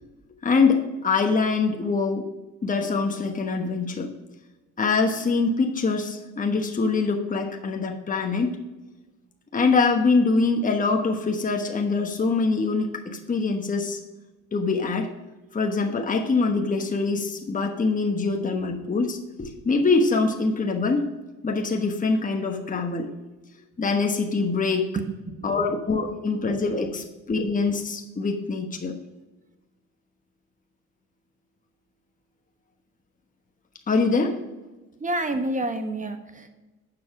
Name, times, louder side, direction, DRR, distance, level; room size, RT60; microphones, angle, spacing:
voice 1, 0.4-2.2 2.6-4.1 4.8-8.6 9.5-14.0 14.5-15.1 15.5-21.1 21.4-23.1 23.8-24.9 25.4-28.9 33.9-34.4, left 4 dB, 25° left, 3 dB, 1.2 m, -24 dB
voice 2, 24.9-25.7 35.0-36.5, right 2 dB, 25° right, 7 dB, 1.2 m, -29 dB
7.9 x 5.9 x 4.9 m, 1.1 s
cardioid pair, 90°, 30 cm